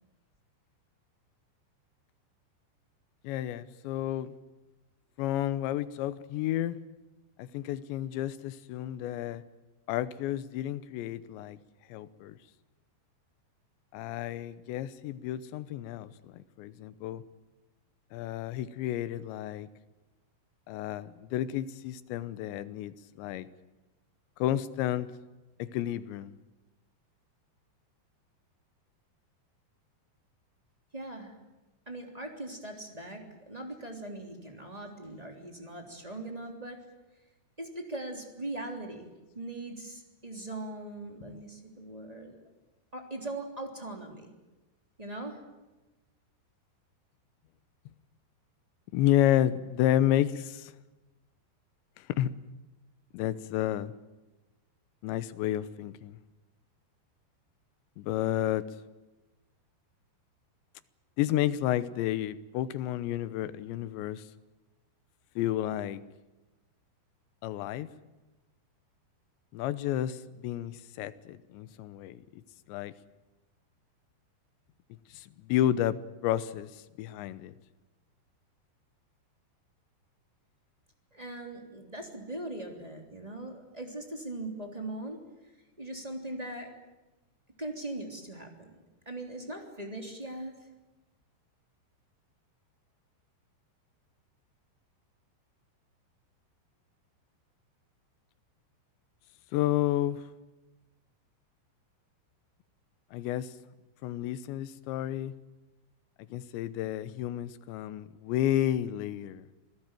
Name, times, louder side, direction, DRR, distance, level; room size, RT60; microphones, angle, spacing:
voice 1, 3.2-4.3 5.2-6.8 7.4-9.4 9.9-11.6 11.9-12.3 13.9-17.2 18.1-19.7 20.7-23.5 24.4-25.1 25.6-26.3 41.3-41.4 48.9-50.7 52.0-52.3 53.1-53.9 55.0-56.2 58.0-58.6 61.2-64.2 65.4-66.0 67.4-67.9 69.5-72.2 72.7-72.9 75.1-77.5 99.5-100.2 103.1-103.5 104.0-105.3 106.3-109.4, left 12 dB, 80° left, 3.2 m, -31 dB
voice 2, 30.9-31.4 31.9-36.8 37.6-39.1 39.3-42.4 42.9-44.3 45.0-45.4 81.1-85.2 85.8-86.7 87.6-88.7 89.0-90.5, right 2 dB, 10° right, 2.5 m, -40 dB
27.5 x 18.0 x 9.1 m
omnidirectional pair, 5.2 m